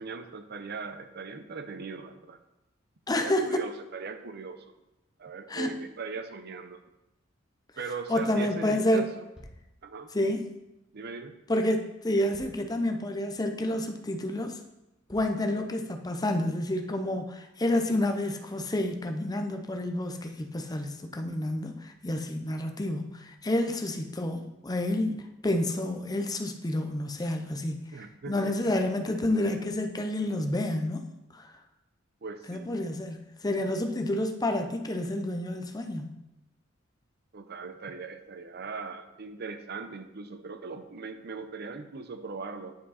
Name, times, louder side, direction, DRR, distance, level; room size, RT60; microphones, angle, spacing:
voice 1, 0.0-2.4 3.1-4.7 5.2-6.8 7.8-9.3 9.8-10.1 10.9-11.4 27.9-28.7 32.2-32.7 37.3-42.8, right 4 dB, 55° right, 9 dB, 0.6 m, -39 dB
voice 2, 3.1-3.6 5.5-5.7 8.1-9.1 10.1-10.5 11.5-14.6 15.1-27.9 28.3-31.5 32.5-36.2, left 1 dB, 20° left, 5 dB, 0.6 m, -29 dB
sound 1, 9.3-9.7 11.3-11.4 12.3-12.7 13.3-13.4 13.9-14.0 15.1-15.4, equal, 5° right, 1.6 m, -51 dB
9.3 x 5.1 x 4.2 m, 0.95 s
head